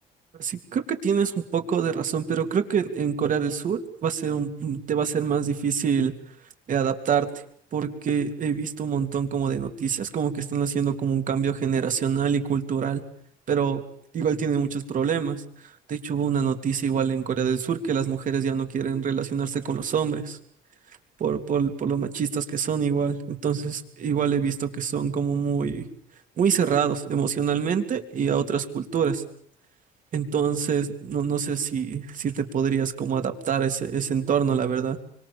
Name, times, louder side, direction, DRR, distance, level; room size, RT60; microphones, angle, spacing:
voice 1, 0.4-6.1 6.7-7.3 7.7-13.0 13.5-13.8 14.1-20.4 21.2-25.9 26.4-29.2 30.1-35.0, right 7 dB, 50° right, 7 dB, 3.3 m, -25 dB
25.5 x 25.0 x 7.2 m, 0.65 s
cardioid pair, 110°, 17 cm